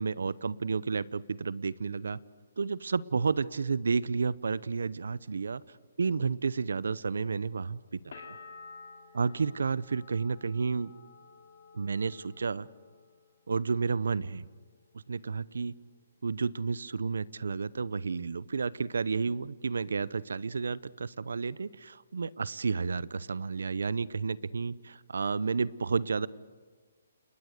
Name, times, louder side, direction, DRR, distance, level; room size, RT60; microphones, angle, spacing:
voice 1, 0.0-2.2 2.6-5.6 6.0-7.8 8.0-8.4 9.1-10.9 11.7-12.7 13.5-14.5 15.1-15.7 16.2-26.3, right 5 dB, 80° right, 21 dB, 0.7 m, -31 dB
sound 1, 8.1-13.7 14.0-14.8, left 4 dB, 65° left, 3.2 m, -52 dB
29.5 x 20.0 x 6.6 m, 1.4 s
hypercardioid pair, 155°, 0 cm